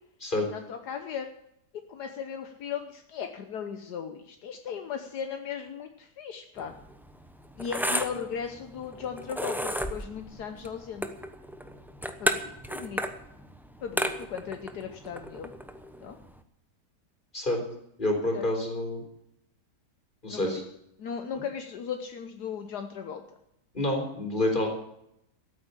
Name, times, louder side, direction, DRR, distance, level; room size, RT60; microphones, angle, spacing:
voice 1, 0.4-1.3 1.7-6.7 7.6-11.1 12.2-13.0 13.8-15.5 16.0-16.2 18.3-18.5 20.3-20.6 21.0-23.4, left 7 dB, 75° left, 6 dB, 1.5 m, -37 dB
sound 1, 6.6-16.4, equal, ahead, 0.5 m, -34 dB
voice 2, 18.0-19.0 20.2-20.6 23.7-24.7, left 1 dB, 30° left, 1 dB, 4.1 m, -28 dB
14.0 x 8.5 x 8.4 m, 0.78 s
omnidirectional pair, 1.8 m